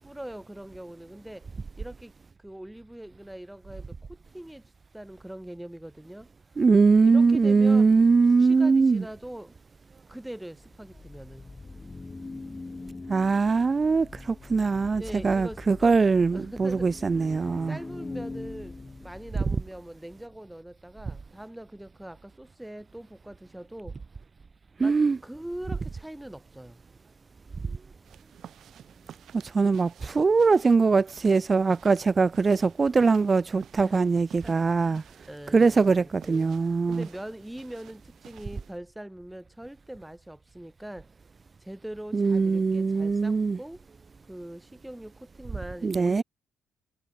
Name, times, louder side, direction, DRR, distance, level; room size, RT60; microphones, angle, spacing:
voice 1, 0.0-1.5 1.8-2.1 2.4-6.3 7.0-8.0 8.3-9.6 10.1-11.5 15.0-16.0 16.3-24.0 24.8-26.8 33.8-34.0 34.3-41.1 41.6-43.8 44.3-46.2, right 1 dB, 5° right, 1.3 m, -42 dB
voice 2, 6.6-9.0 13.1-17.8 24.8-25.2 29.4-35.0 35.5-37.0 42.1-43.6 45.8-46.2, right 4 dB, 30° right, 0.3 m, -22 dB
sound 1, 10.6-19.9, left 3 dB, 20° left, 1.6 m, -42 dB
sound 2, 28.0-38.8, right 10 dB, 70° right, 2.1 m, -53 dB
cardioid pair, 90°, 0 cm